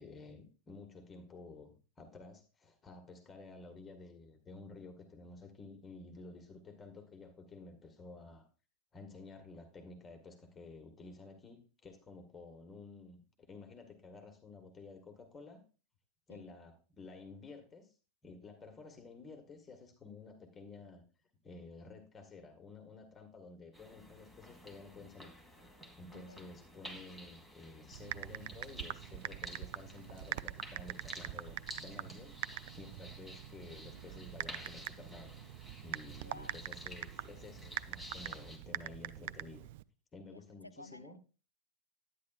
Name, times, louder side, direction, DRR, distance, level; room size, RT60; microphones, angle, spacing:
voice 1, 0.0-8.5 8.9-13.2 13.5-15.6 16.3-17.9 18.2-21.0 21.4-25.3 26.0-32.4 32.7-35.3 35.8-39.7 40.1-41.2, left 3 dB, 20° left, 1.8 m, -52 dB
sound 1, 23.7-38.6, left 1 dB, 5° right, 2.3 m, -52 dB
voice 2, 26.1-26.5 36.2-36.7 40.3-41.2, left 2 dB, 85° left, 0.4 m, -54 dB
Typing, 27.9-39.8, right 15 dB, 50° right, 0.4 m, -44 dB
11.5 x 9.6 x 2.5 m
figure-of-eight pair, 90°, 0 cm